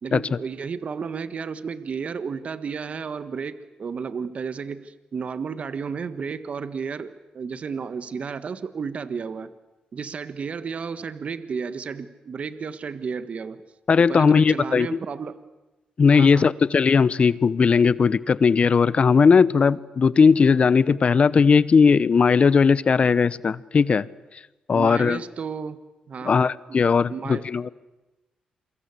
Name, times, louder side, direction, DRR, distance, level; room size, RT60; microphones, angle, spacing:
voice 1, 0.0-9.5 9.9-13.6 14.0-15.4 16.1-16.5 24.7-25.8 26.1-26.3 27.1-27.5, right 5 dB, 55° right, 1.5 m, -32 dB
voice 2, 13.9-14.9 16.0-24.1 24.7-25.2 26.2-27.7, left 5 dB, 50° left, 0.9 m, -18 dB
28.5 x 23.5 x 8.4 m
cardioid pair, 65°, 3 cm